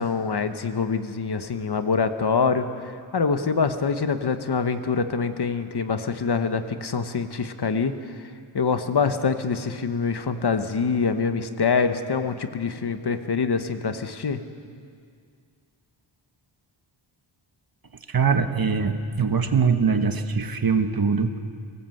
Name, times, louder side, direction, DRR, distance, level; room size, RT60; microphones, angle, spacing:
voice 1, 0.0-14.4, left 5 dB, 55° left, 9 dB, 1.2 m, -25 dB
voice 2, 18.1-21.4, right 5 dB, 45° right, 7 dB, 1.3 m, -22 dB
23.5 x 19.0 x 7.9 m, 2.2 s
wide cardioid pair, 135°, 48 cm